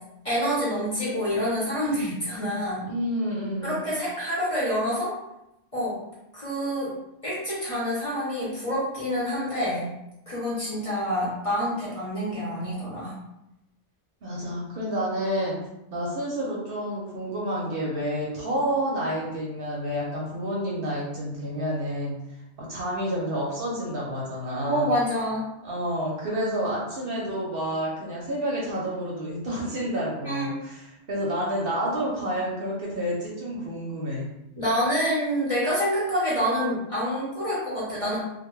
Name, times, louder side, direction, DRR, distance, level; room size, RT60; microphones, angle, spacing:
voice 1, 0.2-2.9 3.6-5.1 5.7-6.0 6.3-6.9 7.2-9.9 10.3-13.1 24.6-25.4 30.2-30.5 34.6-38.2, equal, 35° left, -8 dB, 0.7 m, -27 dB
voice 2, 2.8-3.8 14.2-15.6 15.9-22.2 22.6-24.9 25.6-34.3, equal, 55° right, -5 dB, 0.8 m, -29 dB
2.2 x 2.2 x 3.0 m, 0.88 s
omnidirectional pair, 1.2 m